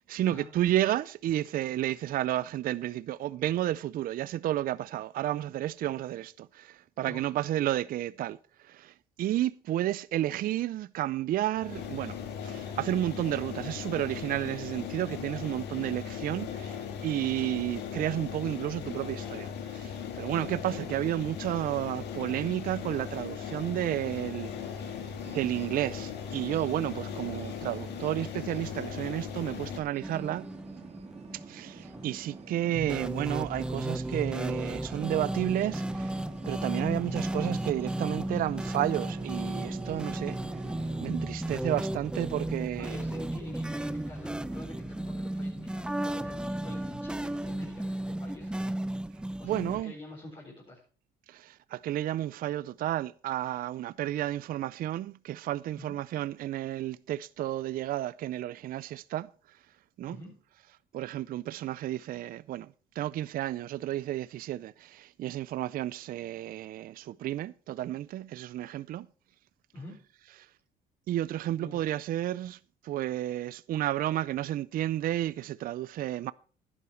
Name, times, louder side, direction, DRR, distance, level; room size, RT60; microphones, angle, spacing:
voice 1, 0.0-12.2 12.4-24.7 25.3-30.5 31.3-40.4 41.0-43.0 49.4-49.9 51.3-59.6 60.0-60.2 60.9-69.1 71.1-76.3, right 13 dB, 55° right, 0.4 m, -32 dB
sound 1, 11.5-29.8, left 8 dB, 75° left, 2.0 m, -38 dB
sound 2, 24.4-41.1, right 5 dB, 40° right, 1.9 m, -48 dB
sound 3, 30.0-49.8, right 1 dB, 5° right, 0.6 m, -34 dB
voice 2, 42.7-48.7 49.1-50.8 55.7-56.0 60.1-60.3 69.7-70.0 71.6-71.8, left 2 dB, 30° left, 4.1 m, -47 dB
11.0 x 10.0 x 4.4 m
cardioid pair, 90°, 18 cm